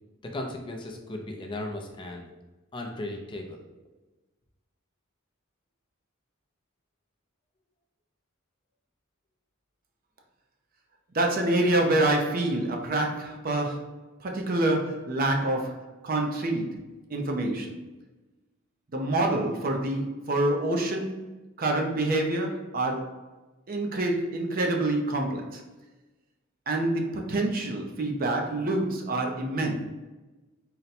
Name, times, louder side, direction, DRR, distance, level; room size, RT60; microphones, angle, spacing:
voice 1, 0.2-2.3 2.7-3.6, left 1 dB, 25° left, 2 dB, 0.4 m, -36 dB
voice 2, 11.1-17.8 18.9-21.3 21.6-23.2 23.7-25.6 26.7-29.8, right 2 dB, 45° right, 2 dB, 0.6 m, -27 dB
4.0 x 2.1 x 4.1 m, 1.1 s
head